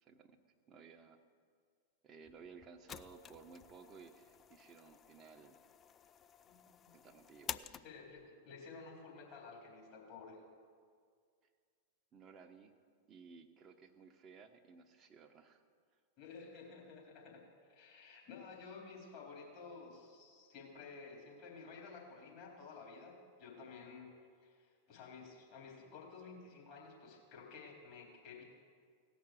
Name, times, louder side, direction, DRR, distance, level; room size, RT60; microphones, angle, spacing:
voice 1, 0.0-0.4 0.7-1.2 2.0-5.6 6.9-7.8 12.1-12.7 13.1-15.6, right 5 dB, 25° right, 6 dB, 1.1 m, -57 dB
sound 1, 2.2-8.3, left 8 dB, 25° left, 0.3 m, -51 dB
voice 2, 6.4-6.9 7.8-10.4 16.2-24.1 24.4-28.4, left 4 dB, 45° left, -2 dB, 3.7 m, -53 dB
17.0 x 6.0 x 7.7 m, 2.1 s
figure-of-eight pair, 90°, 0 cm